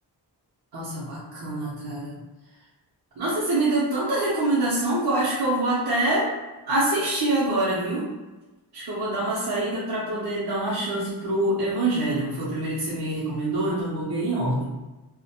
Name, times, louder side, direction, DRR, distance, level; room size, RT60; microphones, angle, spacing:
voice 1, 0.7-2.2 3.2-6.3 6.7-8.1 8.7-14.6, right 2 dB, 65° right, -8 dB, 0.7 m, -25 dB
2.4 x 2.1 x 2.8 m, 1.1 s
wide cardioid pair, 150°, 42 cm